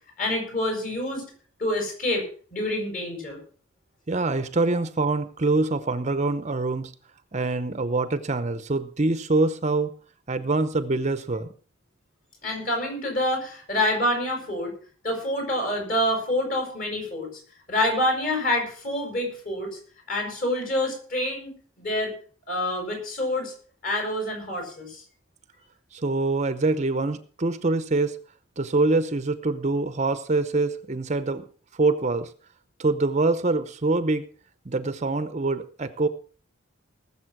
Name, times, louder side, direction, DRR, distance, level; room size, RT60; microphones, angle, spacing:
voice 1, 0.2-1.3 1.6-2.2 2.5-3.4 12.4-14.7 15.0-17.3 17.7-19.8 20.1-22.1 22.5-23.5 23.8-25.0, left 1 dB, 40° left, 2 dB, 6.8 m, -27 dB
voice 2, 4.1-6.9 7.3-9.9 10.3-11.5 25.9-28.2 28.6-31.4 31.8-32.3 32.8-34.2 34.7-36.1, right 3 dB, 35° right, 12 dB, 0.7 m, -24 dB
19.0 x 7.2 x 6.0 m, 0.43 s
head